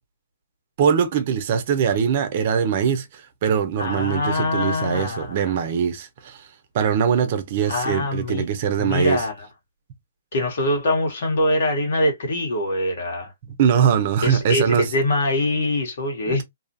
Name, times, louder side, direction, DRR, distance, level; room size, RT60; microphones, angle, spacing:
voice 1, 0.8-6.4 6.7-9.2 13.6-14.9 16.3-16.4, right 7 dB, 45° right, 0.7 m, -22 dB
voice 2, 3.8-5.4 7.7-8.5 8.8-9.5 10.3-13.3 14.2-16.4, left 1 dB, 65° left, 1.5 m, -23 dB
2.7 x 2.4 x 2.6 m
hypercardioid pair, 155°, 0 cm